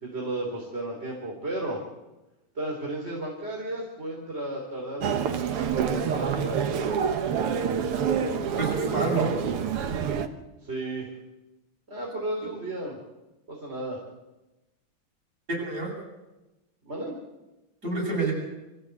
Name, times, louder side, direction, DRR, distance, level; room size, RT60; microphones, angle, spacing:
voice 1, 0.0-1.8 2.5-6.6 10.6-11.1 11.9-13.0 13.5-14.0 16.8-17.1, right 1 dB, 30° right, -3 dB, 3.9 m, -33 dB
Human voice, 5.0-10.3, right 7 dB, 85° right, 2.2 m, -27 dB
voice 2, 8.6-9.3 15.5-15.9 17.8-18.3, right 2 dB, 45° right, -2 dB, 8.6 m, -28 dB
25.5 x 15.5 x 8.4 m, 1.0 s
omnidirectional pair, 2.4 m